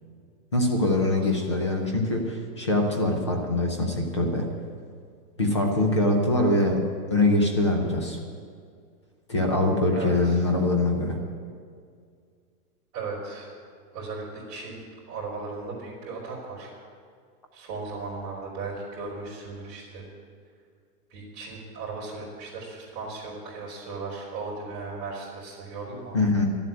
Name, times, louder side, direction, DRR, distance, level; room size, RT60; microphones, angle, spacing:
voice 1, 0.5-4.5 5.4-6.8 7.1-8.2 9.3-11.2 26.1-26.4, left 2 dB, 20° left, 3 dB, 0.5 m, -23 dB
voice 2, 9.9-10.4 12.9-13.5 13.9-14.8 15.1-16.7 17.5-20.1 21.1-26.2, right 3 dB, 25° right, -6 dB, 3.6 m, -36 dB
12.0 x 7.7 x 9.2 m, 2.1 s
hypercardioid pair, 180°, 48 cm